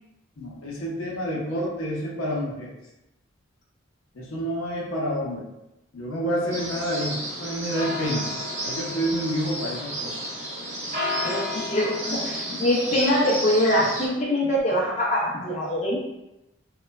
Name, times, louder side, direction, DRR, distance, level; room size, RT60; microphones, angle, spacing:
voice 1, 0.4-2.7 4.1-5.5 5.9-8.3 8.6-10.2, equal, 80° left, -3 dB, 0.6 m, -28 dB
sound 1, 6.5-14.1, equal, 35° right, 0.5 m, -31 dB
voice 2, 11.2-16.0, left 1 dB, 30° left, -5 dB, 0.4 m, -23 dB
2.9 x 2.1 x 2.2 m, 0.92 s
head